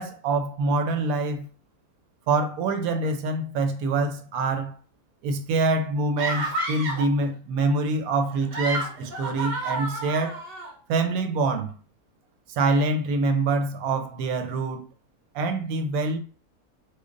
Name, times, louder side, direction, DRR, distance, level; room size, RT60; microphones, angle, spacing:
voice 1, 0.0-1.5 2.3-4.7 5.2-10.4 10.9-11.7 12.5-14.9 15.3-16.2, right 3 dB, 75° right, 1.0 m, -25 dB
sound 1, 6.2-7.1 8.3-10.7, right 1 dB, 50° right, 0.7 m, -30 dB
3.1 x 2.2 x 3.7 m
omnidirectional pair, 1.6 m